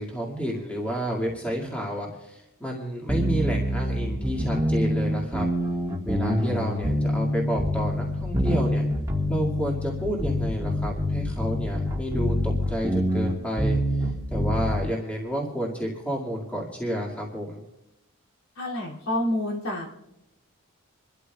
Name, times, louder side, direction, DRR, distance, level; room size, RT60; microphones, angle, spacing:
voice 1, 0.0-5.5 6.0-8.8 9.3-13.8 14.3-17.6, equal, 5° left, -2 dB, 2.1 m, -30 dB
sound 1, 3.1-14.9, equal, 15° right, 1.7 m, -26 dB
voice 2, 18.6-19.9, left 1 dB, 80° left, -3 dB, 2.8 m, -28 dB
27.5 x 13.0 x 2.4 m, 0.87 s
head